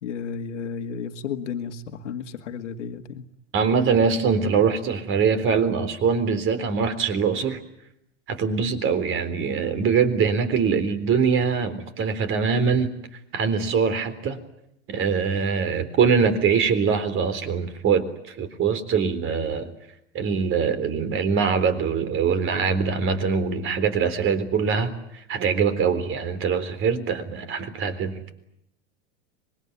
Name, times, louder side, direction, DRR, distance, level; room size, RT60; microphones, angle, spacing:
voice 1, 0.0-3.3, left 6 dB, 80° left, 7 dB, 2.1 m, -33 dB
voice 2, 3.5-7.6 8.3-12.9 13.3-14.4 14.9-18.1 18.4-19.7 20.1-28.3, right 6 dB, 35° right, 11 dB, 3.9 m, -23 dB
25.5 x 22.0 x 9.6 m, 0.77 s
hypercardioid pair, 110°, 36 cm